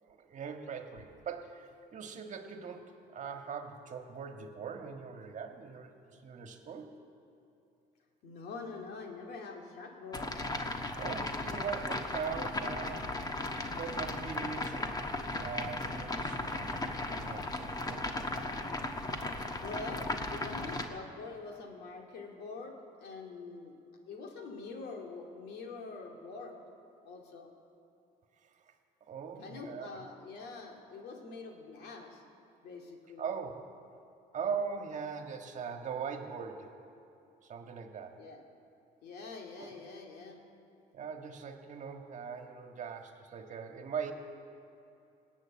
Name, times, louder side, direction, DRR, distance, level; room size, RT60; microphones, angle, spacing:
voice 1, 0.0-7.0 10.9-13.1 13.7-15.0 15.4-18.3 29.1-30.0 33.2-33.7 34.3-36.7 37.4-38.1 39.6-39.7 40.9-44.1, right 6 dB, 45° right, 4 dB, 1.6 m, -41 dB
voice 2, 8.2-10.3 19.6-20.0 20.3-23.7 24.1-26.6 27.0-27.5 29.4-32.2 32.6-33.3 38.1-38.4 39.0-40.4, left 4 dB, 75° left, 2 dB, 2.5 m, -45 dB
sound 1, 10.1-20.9, left 2 dB, 25° left, 1.3 m, -36 dB
19.5 x 8.3 x 8.6 m, 2.7 s
cardioid pair, 110°, 17 cm